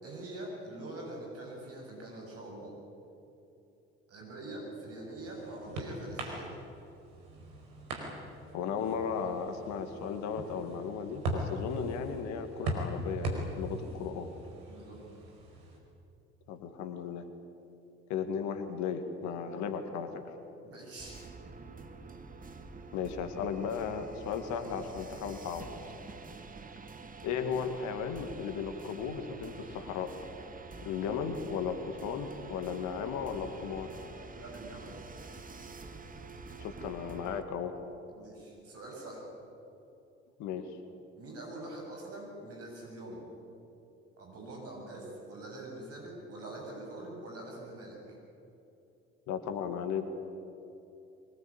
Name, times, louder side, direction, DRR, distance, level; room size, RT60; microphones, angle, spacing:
voice 1, 0.0-2.7 4.1-6.5 13.8-13.9 14.7-15.0 19.5-19.6 20.6-21.2 34.3-34.9 38.2-39.2 41.2-43.2 44.2-48.2, right 1 dB, 45° right, -1 dB, 7.4 m, -44 dB
sound 1, 4.7-15.8, right 1 dB, 65° right, 4.8 m, -40 dB
voice 2, 8.5-14.3 16.5-17.3 18.1-20.2 22.9-25.7 27.2-30.1 30.8-33.9 36.6-37.7 40.4-40.7 49.3-50.0, left 6 dB, 60° left, 8 dB, 2.1 m, -35 dB
sound 2, 21.0-37.4, right 4 dB, 25° right, 2.0 m, -47 dB
24.5 x 21.0 x 8.7 m, 2.8 s
figure-of-eight pair, 50°, 33 cm